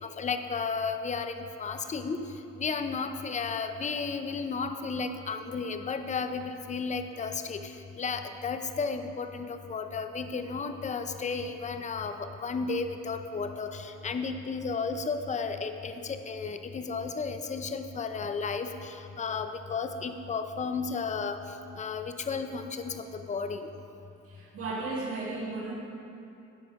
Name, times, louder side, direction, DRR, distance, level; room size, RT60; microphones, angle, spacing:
voice 1, 0.0-2.2 2.5-7.7 8.0-21.4 21.8-23.7, left 5 dB, 25° left, 8 dB, 0.6 m, -33 dB
voice 2, 24.2-25.7, right 3 dB, 50° right, -5 dB, 1.7 m, -35 dB
12.5 x 5.0 x 5.1 m, 2.7 s
cardioid pair, 90°, 30 cm